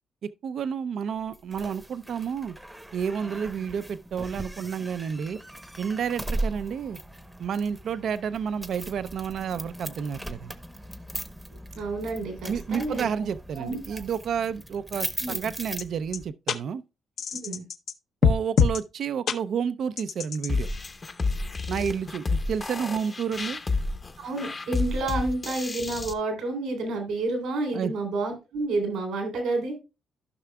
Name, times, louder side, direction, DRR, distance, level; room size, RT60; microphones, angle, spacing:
voice 1, 0.2-2.5 2.9-5.4 5.8-7.0 7.4-10.5 12.5-16.8 18.2-20.7 21.7-23.6 27.7-27.9, right 7 dB, 65° right, 0.5 m, -30 dB
sound 1, 1.3-16.3, right 1 dB, 5° right, 0.8 m, -38 dB
voice 2, 11.7-13.1 13.5-14.0 15.2-15.4 17.4-17.6 24.2-29.7, right 2 dB, 80° right, 3.3 m, -30 dB
sound 2, 15.8-15.9 16.1-16.2 16.5-16.6 17.2-17.9 18.2-18.8 19.3-19.4 20.0-20.5, left 6 dB, 65° left, 0.7 m, -23 dB
sound 3, 20.5-26.1, left 3 dB, 30° left, 0.8 m, -30 dB
14.5 x 5.7 x 2.2 m
cardioid pair, 90°, 0 cm